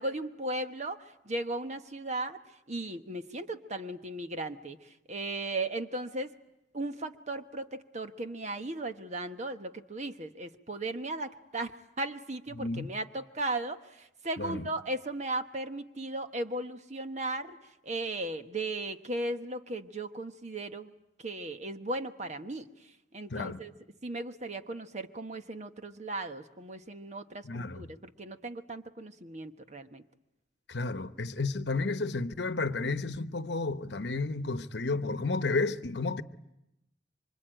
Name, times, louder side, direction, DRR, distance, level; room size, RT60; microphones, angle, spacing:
voice 1, 0.0-2.4 2.7-6.3 6.7-11.7 12.0-17.6 17.8-20.9 21.2-22.7 23.1-23.7 24.0-30.0, right 2 dB, 40° right, 1.2 m, -36 dB
voice 2, 12.5-12.9 14.4-14.7 23.3-23.6 27.4-27.9 30.7-36.2, left 3 dB, 70° left, 1.0 m, -32 dB
26.0 x 25.0 x 9.0 m
head